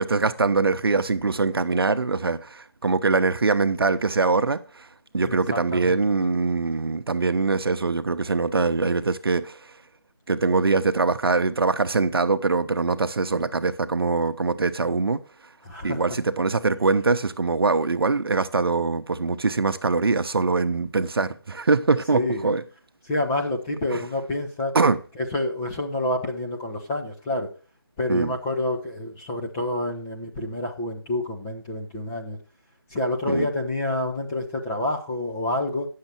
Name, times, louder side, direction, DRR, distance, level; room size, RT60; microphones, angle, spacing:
voice 1, 0.0-4.9 5.1-9.6 10.3-15.2 15.8-22.6 23.9-24.0 24.7-25.0 28.1-28.3 33.3-33.5, right 4 dB, 70° right, 0.9 m, -23 dB
voice 2, 5.2-6.0 15.6-16.0 22.1-22.5 23.1-24.7 25.2-27.5 28.0-32.4 32.9-35.9, left 1 dB, 10° left, 0.7 m, -28 dB
9.6 x 6.6 x 4.3 m
figure-of-eight pair, 165°, 13 cm